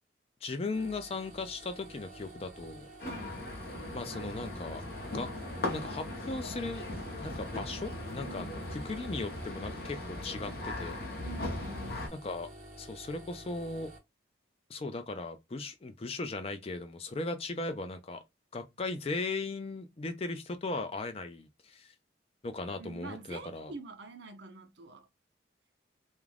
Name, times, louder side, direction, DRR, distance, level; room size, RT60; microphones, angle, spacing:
voice 1, 0.4-2.9 3.9-4.8 5.1-5.3 5.7-6.9 7.2-11.1 12.1-12.5 12.8-13.9 14.7-18.2 18.5-21.9 22.4-23.7, left 3 dB, 30° left, 0.4 m, -37 dB
sound 1, 0.7-14.0, right 1 dB, 40° right, 0.9 m, -50 dB
sound 2, 3.0-12.1, left 1 dB, 50° left, 0.7 m, -39 dB
voice 2, 3.0-3.5 8.2-8.6 11.2-12.1 22.8-25.1, right 3 dB, 65° right, 0.6 m, -46 dB
2.4 x 2.2 x 3.2 m
head